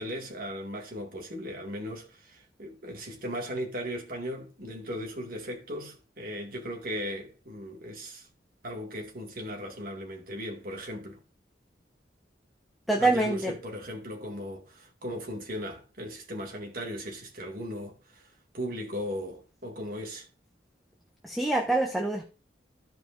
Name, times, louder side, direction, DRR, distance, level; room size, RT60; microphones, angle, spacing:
voice 1, 0.0-8.3 8.6-11.2 13.0-20.3, equal, 50° right, 2.1 m, -37 dB
voice 2, 12.9-13.5 21.2-22.3, right 2 dB, ahead, 1.0 m, -25 dB
14.5 x 5.4 x 2.6 m
head